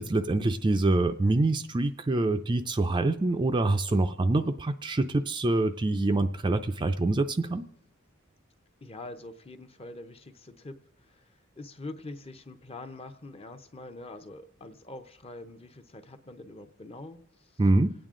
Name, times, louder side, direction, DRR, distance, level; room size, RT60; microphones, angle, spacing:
voice 1, 0.0-7.6 17.6-17.9, right 2 dB, 20° right, 8 dB, 0.4 m, -25 dB
voice 2, 8.8-17.5, left 2 dB, 25° left, 7 dB, 0.8 m, -44 dB
26.5 x 9.0 x 3.7 m, 0.97 s
head